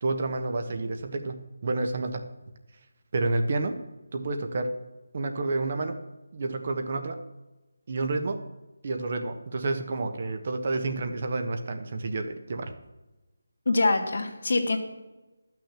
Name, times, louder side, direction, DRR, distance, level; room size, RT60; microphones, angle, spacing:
voice 1, 0.0-2.2 3.1-3.8 4.1-4.8 5.1-6.0 6.3-7.2 7.9-8.4 8.8-12.7, right 2 dB, 45° right, 6 dB, 1.2 m, -29 dB
voice 2, 13.7-14.8, left 3 dB, 65° left, 4 dB, 1.7 m, -24 dB
11.5 x 6.1 x 7.4 m, 1.1 s
figure-of-eight pair, 160°, 0 cm